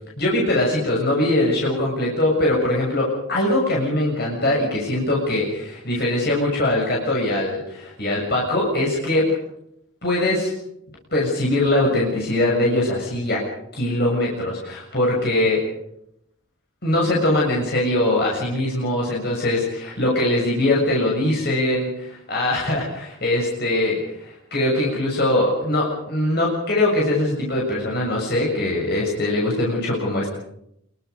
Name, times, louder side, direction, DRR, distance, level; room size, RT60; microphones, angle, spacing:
voice 1, 0.2-9.4 10.0-10.5 11.1-13.4 13.7-15.6 16.8-30.3, left 1 dB, 50° left, -3 dB, 6.9 m, -22 dB
27.5 x 23.0 x 5.3 m, 0.75 s
head